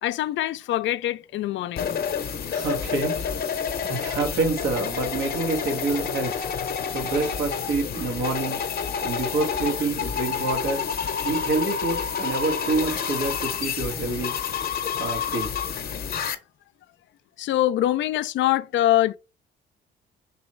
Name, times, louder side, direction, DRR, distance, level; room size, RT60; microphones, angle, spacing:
voice 1, 0.0-1.9 17.4-19.2, left 13 dB, 70° left, 0.4 m, -24 dB
sound 1, 1.8-16.4, left 7 dB, 50° left, 0.7 m, -29 dB
voice 2, 2.5-3.2 3.8-6.4 6.9-8.6 9.0-10.8 11.2-14.3 15.0-15.5, right 3 dB, 80° right, 1.6 m, -27 dB
3.9 x 3.0 x 4.3 m
cardioid pair, 90°, 20 cm